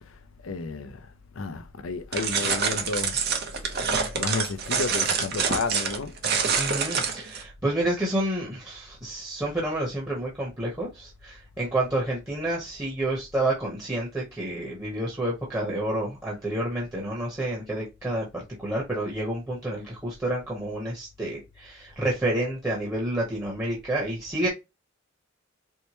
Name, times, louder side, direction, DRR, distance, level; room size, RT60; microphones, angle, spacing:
voice 1, 0.4-1.0 1.4-3.2 4.1-6.1 24.4-24.5, left 4 dB, 75° left, 0.5 m, -31 dB
sound 1, 2.1-7.4, right 5 dB, 50° right, 0.8 m, -26 dB
voice 2, 6.6-24.5, right 1 dB, 10° right, 0.9 m, -29 dB
4.5 x 2.1 x 2.9 m
head